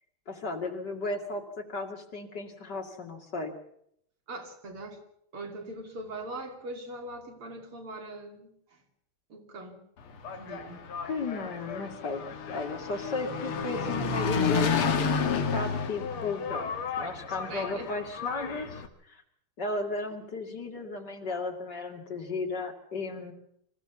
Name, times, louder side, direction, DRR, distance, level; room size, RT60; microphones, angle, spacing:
voice 1, 0.3-3.5 11.0-19.2 19.6-23.3, left 3 dB, 50° left, 2 dB, 3.0 m, -35 dB
voice 2, 4.3-5.0 5.3-8.5 9.3-9.8 10.3-10.8 17.5-17.9, right 2 dB, 80° right, 4 dB, 3.9 m, -41 dB
Engine, 10.0-18.9, left 5 dB, 80° left, 2.4 m, -31 dB
25.0 x 15.5 x 7.1 m, 0.72 s
omnidirectional pair, 2.4 m